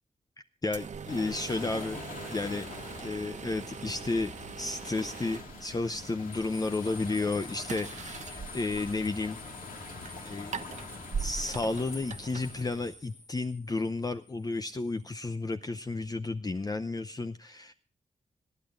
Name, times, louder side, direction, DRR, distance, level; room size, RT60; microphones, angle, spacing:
voice 1, 0.6-2.0 2.3-2.7 3.0-4.3 4.6-9.4 10.2-10.8 11.2-17.7, left 3 dB, 30° left, 8 dB, 0.6 m, -32 dB
sound 1, 0.7-13.2, right 6 dB, 60° right, 0.8 m, -42 dB
sound 2, 1.1-12.9, left 4 dB, 80° left, 2.1 m, -45 dB
sound 3, 1.4-4.6 5.0-5.1 6.3-15.3, left 2 dB, 55° left, 3.2 m, -51 dB
26.0 x 10.5 x 2.5 m, 0.39 s
cardioid pair, 70°, 14 cm